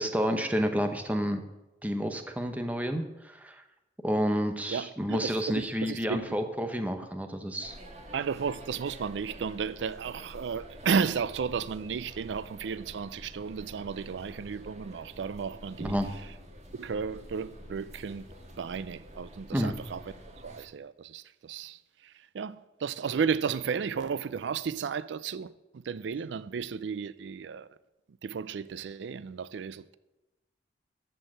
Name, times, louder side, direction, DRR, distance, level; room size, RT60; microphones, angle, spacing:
voice 1, 0.0-1.4 1.8-3.6 4.0-7.7 15.8-16.1 19.5-19.7, equal, 10° right, 0.8 m, -30 dB
voice 2, 4.7-6.4 8.1-16.0 16.7-18.3 18.6-20.0 20.4-27.7 28.2-30.0, right 6 dB, 90° right, 0.4 m, -33 dB
sound 1, 7.6-20.6, equal, 40° right, 1.7 m, -48 dB
13.5 x 4.5 x 7.5 m
head